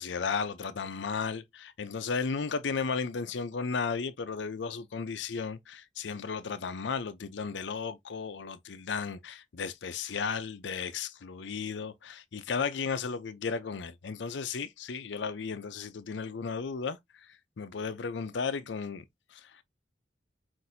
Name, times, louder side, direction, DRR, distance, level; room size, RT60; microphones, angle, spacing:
voice 1, 0.0-17.3 17.6-19.0 19.3-19.6, left 5 dB, 80° left, 0.5 m, -34 dB
5.8 x 2.6 x 2.6 m
head